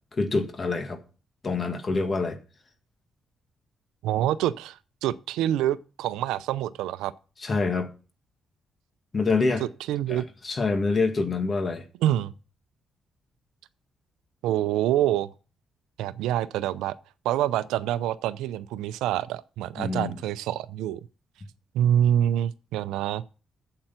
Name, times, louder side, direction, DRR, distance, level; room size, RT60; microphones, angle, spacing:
voice 1, 0.1-1.0 1.4-2.4 7.4-7.9 9.1-9.6 10.1-11.8 19.8-20.2, left 3 dB, 40° left, 1.9 m, -26 dB
voice 2, 4.0-7.1 9.6-10.2 12.0-12.3 14.4-15.3 16.0-17.0 17.2-21.0 21.7-23.2, right 11 dB, 85° right, 0.5 m, -26 dB
8.8 x 7.8 x 5.8 m
supercardioid pair, 55°, 0 cm